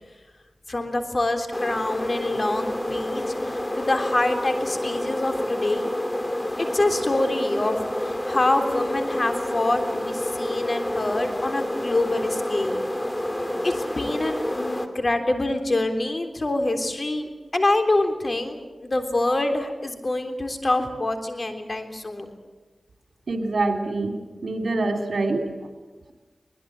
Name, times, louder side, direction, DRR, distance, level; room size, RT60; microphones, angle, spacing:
voice 1, 0.7-5.9 6.6-12.8 13.6-22.3, left 2 dB, 45° left, 6 dB, 3.4 m, -26 dB
sound 1, 1.5-14.9, left 1 dB, 20° left, 2.6 m, -28 dB
voice 2, 23.3-24.1 24.4-25.5, right 2 dB, 80° right, 5 dB, 3.3 m, -25 dB
21.5 x 20.5 x 8.9 m, 1.2 s
cardioid pair, 45°, 0 cm